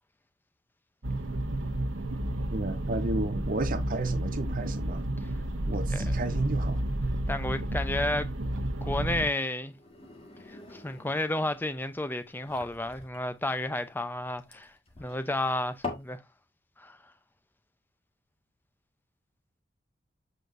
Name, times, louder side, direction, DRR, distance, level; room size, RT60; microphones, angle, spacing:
sound 1, 1.0-9.3, right 1 dB, 85° right, 1.1 m, -31 dB
voice 1, 2.5-5.0 5.7-6.9, right 2 dB, 45° right, 0.8 m, -32 dB
voice 2, 5.9-6.3 7.3-8.3 8.8-9.7 10.5-14.7 15.0-16.2 16.8-17.0, left 1 dB, 10° left, 0.6 m, -32 dB
sound 2, 9.7-16.2, left 3 dB, 30° left, 1.8 m, -44 dB
7.8 x 5.1 x 2.6 m
head